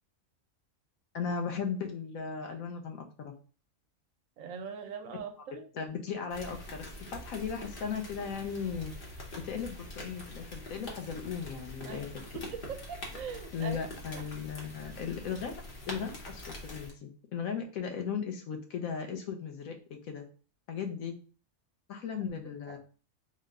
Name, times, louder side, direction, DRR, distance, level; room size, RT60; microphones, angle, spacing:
voice 1, 1.1-3.3 5.7-8.9 9.4-12.1 13.5-15.5 15.9-20.2 20.7-21.1 21.9-22.8, left 6 dB, 85° left, 4 dB, 1.1 m, -37 dB
voice 2, 4.4-5.7 11.8-12.1 12.3-13.8 14.1-14.2 22.7-22.8, right 6 dB, 75° right, 6 dB, 1.0 m, -41 dB
sound 1, 6.3-16.9, left 1 dB, 45° left, 1.0 m, -44 dB
3.7 x 2.1 x 3.5 m, 0.38 s
omnidirectional pair, 1.4 m